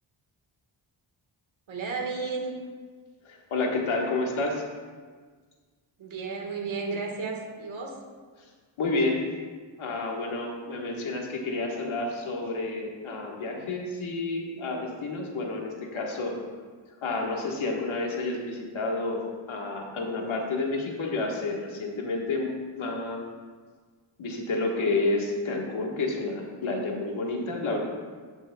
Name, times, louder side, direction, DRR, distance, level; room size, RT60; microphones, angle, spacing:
voice 1, 1.7-2.6 6.0-8.0, right 4 dB, 75° right, 1 dB, 1.6 m, -33 dB
voice 2, 3.2-4.6 8.8-9.2 9.8-16.3 17.0-23.2 24.2-27.8, left 3 dB, 80° left, 0 dB, 1.5 m, -30 dB
16.5 x 6.2 x 2.3 m, 1.5 s
wide cardioid pair, 110°, 47 cm